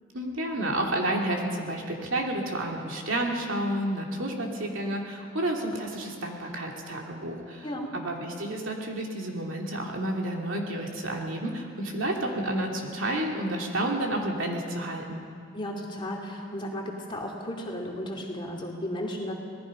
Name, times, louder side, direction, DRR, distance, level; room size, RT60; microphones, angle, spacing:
voice 1, 0.1-7.7 7.9-15.2, right 1 dB, 70° right, 0 dB, 3.0 m, -30 dB
voice 2, 7.6-7.9 15.5-19.3, left 1 dB, 25° left, 0 dB, 2.7 m, -34 dB
26.5 x 19.0 x 5.4 m, 2.2 s
head